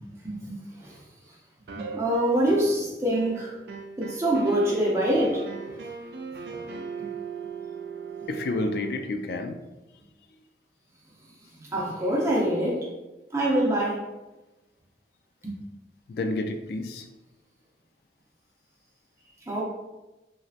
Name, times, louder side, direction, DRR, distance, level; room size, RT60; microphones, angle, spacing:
voice 1, 0.2-1.0 1.8-3.6 4.0-5.5 11.6-12.9 13.3-14.1 15.4-15.5 19.5-19.6, right 1 dB, 15° right, -4 dB, 0.6 m, -25 dB
sound 1, 1.7-2.8 3.1-9.0, right 5 dB, 70° right, 0.4 m, -38 dB
voice 2, 8.3-9.6 16.1-17.0, left 2 dB, 60° left, 6 dB, 0.3 m, -29 dB
3.1 x 2.6 x 2.4 m, 1.0 s
head